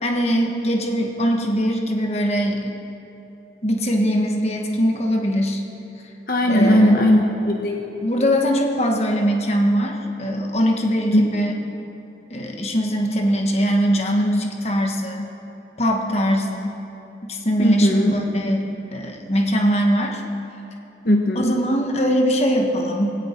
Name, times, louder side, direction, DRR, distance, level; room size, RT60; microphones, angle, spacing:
voice 1, 0.0-2.7 3.6-5.6 6.5-7.0 8.0-11.5 12.3-15.3 15.8-16.8 17.2-20.2 21.3-23.2, equal, 35° left, 2 dB, 1.4 m, -21 dB
voice 2, 6.3-7.8 11.1-11.3 17.6-18.2 21.0-21.5, equal, 55° left, 1 dB, 1.2 m, -18 dB
19.0 x 17.0 x 4.5 m, 2.9 s
head